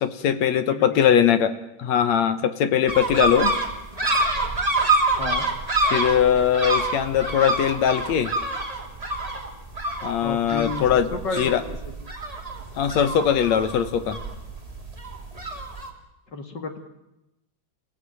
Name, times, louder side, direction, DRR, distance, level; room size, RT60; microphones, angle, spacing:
voice 1, 0.0-3.5 5.9-8.3 10.0-11.6 12.8-14.2, left 9 dB, 70° left, 11 dB, 2.3 m, -21 dB
voice 2, 0.7-1.2 5.2-5.5 10.2-11.8 16.3-16.8, left 3 dB, 40° left, 6 dB, 2.3 m, -32 dB
sound 1, 2.9-15.9, right 2 dB, 15° right, 2.5 m, -27 dB
28.0 x 16.5 x 9.0 m, 0.96 s
omnidirectional pair, 3.5 m